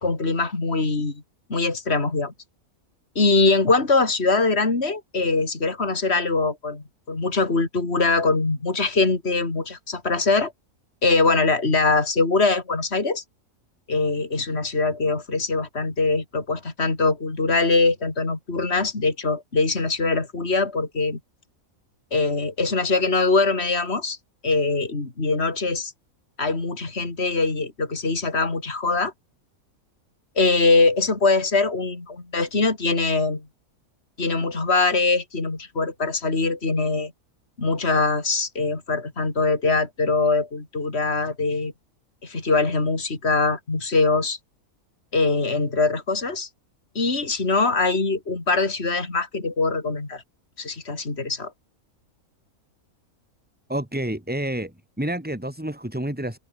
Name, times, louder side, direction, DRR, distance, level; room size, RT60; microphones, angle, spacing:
voice 1, 0.0-1.2 1.5-2.3 3.2-10.5 11.0-13.2 13.9-21.2 22.1-24.2 24.4-25.9 26.4-29.1 30.4-33.4 34.2-37.1 37.6-41.7 42.2-44.4 45.1-46.5 47.0-50.2 50.6-51.5, left 3 dB, 45° left, 3.8 m, -22 dB
voice 2, 53.7-56.4, right 1 dB, 5° right, 2.5 m, -29 dB
omnidirectional pair, 1.5 m